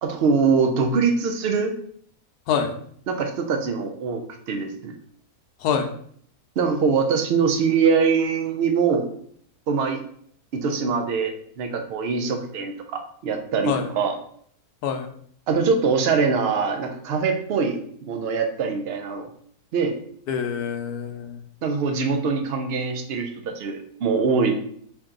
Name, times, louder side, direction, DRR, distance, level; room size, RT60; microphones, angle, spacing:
voice 1, 0.0-1.7 3.1-4.2 4.5-4.9 6.6-9.1 9.7-10.0 10.5-14.2 15.5-17.8 18.1-19.3 19.7-20.0 21.6-24.5, right 5 dB, 80° right, 5 dB, 0.5 m, -23 dB
voice 2, 5.6-5.9 13.7-13.9 14.8-15.1 20.3-21.4, left 7 dB, 75° left, 6 dB, 1.1 m, -25 dB
4.5 x 2.8 x 3.7 m, 0.62 s
omnidirectional pair, 1.7 m